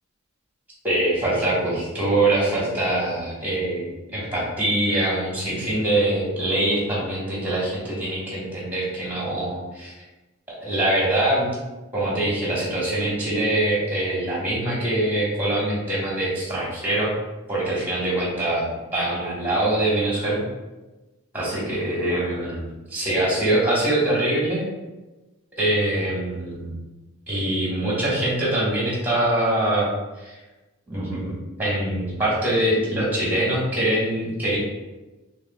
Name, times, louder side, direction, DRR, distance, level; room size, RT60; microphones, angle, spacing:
voice 1, 0.8-3.8 4.1-9.9 10.6-11.5 11.9-17.2 17.5-20.4 21.3-22.6 22.9-24.6 25.6-26.8 27.3-29.9 30.2-30.3 30.9-31.3 31.6-34.6, right 1 dB, 10° right, -6 dB, 1.4 m, -23 dB
4.9 x 3.2 x 2.3 m, 1.1 s
head